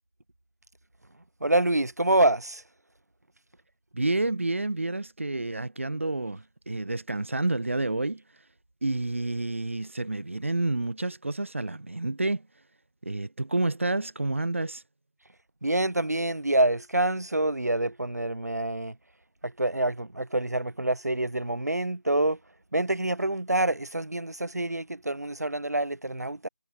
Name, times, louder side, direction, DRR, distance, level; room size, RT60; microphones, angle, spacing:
voice 1, 1.4-2.6 15.6-19.0 19.4-22.4 22.7-26.5, right 1 dB, 75° right, 5.6 m, -26 dB
voice 2, 3.9-8.5 8.8-12.4 13.0-14.8, right 2 dB, 50° right, 3.6 m, -29 dB
figure-of-eight pair, 175°, 9 cm